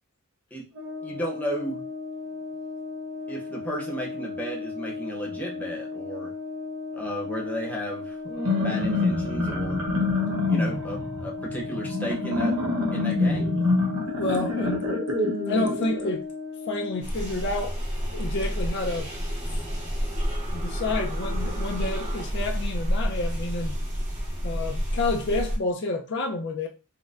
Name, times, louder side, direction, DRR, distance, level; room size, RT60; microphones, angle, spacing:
Brass instrument, 0.7-17.1, left 4 dB, 65° right, 0.5 m, -36 dB
voice 1, 1.0-1.8 3.3-6.3 6.9-8.2 8.6-9.9 10.5-12.6 12.9-13.5, equal, 10° left, 0.8 m, -34 dB
sound 1, 8.3-16.1, left 2 dB, 90° right, 1.0 m, -26 dB
voice 2, 14.2-15.0 15.5-16.3 16.7-17.8 18.1-19.1 20.5-23.8 24.4-26.7, left 2 dB, 55° left, 0.5 m, -29 dB
sound 2, 17.0-25.6, equal, 30° right, 0.9 m, -29 dB
4.2 x 2.1 x 2.4 m
head